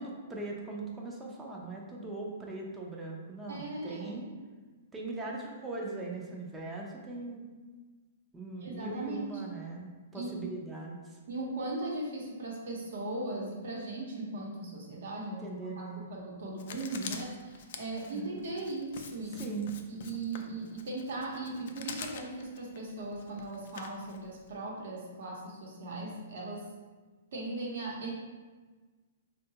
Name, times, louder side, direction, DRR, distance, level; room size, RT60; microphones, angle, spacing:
voice 1, 0.0-4.3 4.9-7.4 8.3-11.2 15.4-16.0 18.1-18.3 19.3-19.7, right 3 dB, 10° right, -2 dB, 0.4 m, -40 dB
voice 2, 3.5-4.2 8.6-9.3 10.1-10.4 11.3-19.5 19.9-26.6 27.3-28.1, right 2 dB, 65° right, -3 dB, 0.9 m, -38 dB
Writing, 16.6-24.5, left 6 dB, 55° left, 0.3 m, -46 dB
3.7 x 2.2 x 2.8 m, 1.4 s
hypercardioid pair, 150°, 0 cm